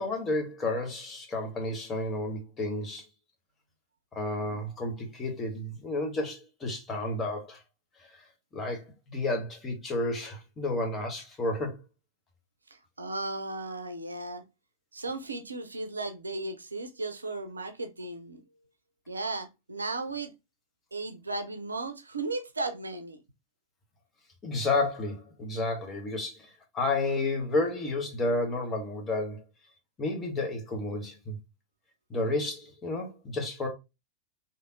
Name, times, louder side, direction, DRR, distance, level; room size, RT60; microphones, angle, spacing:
voice 1, 0.0-3.0 4.1-7.6 8.5-11.8 24.4-26.4 26.7-29.4 30.0-31.4 32.1-33.7, left 2 dB, 20° left, 1.0 m, -31 dB
voice 2, 12.7-14.4 14.9-18.4 19.1-20.3 20.9-23.2, right 2 dB, 80° right, 0.5 m, -35 dB
3.4 x 2.7 x 2.5 m
figure-of-eight pair, 90°, 0 cm